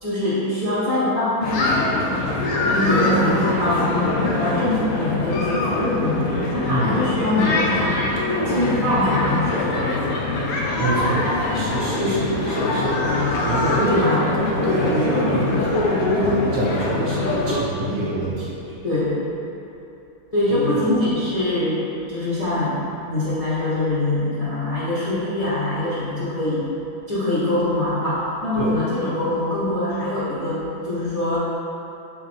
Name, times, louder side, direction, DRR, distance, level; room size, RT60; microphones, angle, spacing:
voice 1, 0.0-2.2 2.7-8.0 8.5-10.1 12.0-12.3 13.9-14.3 18.8-19.2 20.3-26.7 27.1-31.4, left 1 dB, 40° left, -12 dB, 0.5 m, -23 dB
sound 1, 1.4-17.6, left 2 dB, 80° left, 1.0 m, -23 dB
voice 2, 10.8-11.3 11.5-13.0 13.5-14.0 14.4-18.8 20.5-20.8 28.5-28.7, equal, 60° right, -7 dB, 0.9 m, -24 dB
3.6 x 3.2 x 3.3 m, 2.8 s
omnidirectional pair, 1.6 m